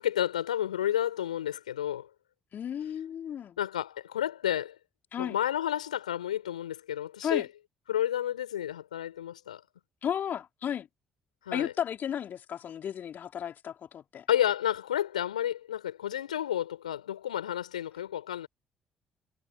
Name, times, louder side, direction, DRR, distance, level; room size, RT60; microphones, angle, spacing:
voice 1, 0.0-2.1 3.6-4.8 5.2-7.5 7.9-9.6 11.5-11.7 14.3-18.5, left 11 dB, 85° left, 4.3 m, -31 dB
voice 2, 2.5-3.6 5.1-5.4 7.2-7.5 10.0-10.9 11.5-14.3, left 9 dB, 55° left, 4.0 m, -34 dB
figure-of-eight pair, 40°, 4 cm